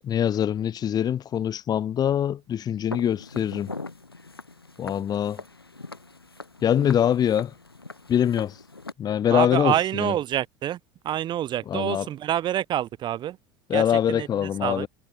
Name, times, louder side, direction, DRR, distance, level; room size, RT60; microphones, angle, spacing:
voice 1, 0.0-3.7 4.8-5.4 6.6-7.5 8.1-8.5 9.0-10.1 11.7-12.1 13.7-14.9, left 9 dB, 35° left, 1.7 m, -24 dB
Walk footsteps, 2.9-8.9, left 3 dB, 90° left, 7.8 m, -41 dB
voice 2, 9.3-10.8 11.0-13.4 13.7-14.9, right 12 dB, 40° right, 1.8 m, -27 dB
figure-of-eight pair, 75°, 12 cm